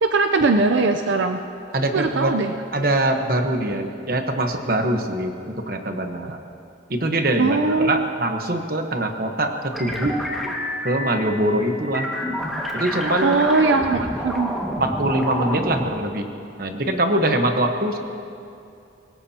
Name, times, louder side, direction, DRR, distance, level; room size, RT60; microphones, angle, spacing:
voice 1, 0.0-1.4 1.9-2.5 6.2-6.3 7.4-8.1 13.2-14.5, right 3 dB, 80° right, 6 dB, 0.6 m, -20 dB
voice 2, 1.7-2.3 2.7-6.4 6.9-10.2 10.8-12.1 12.7-13.3 14.8-16.2 16.6-18.0, right 1 dB, 50° right, 4 dB, 1.2 m, -23 dB
sound 1, 9.7-15.8, equal, ahead, 1.8 m, -29 dB
25.0 x 19.5 x 2.9 m, 2.6 s
head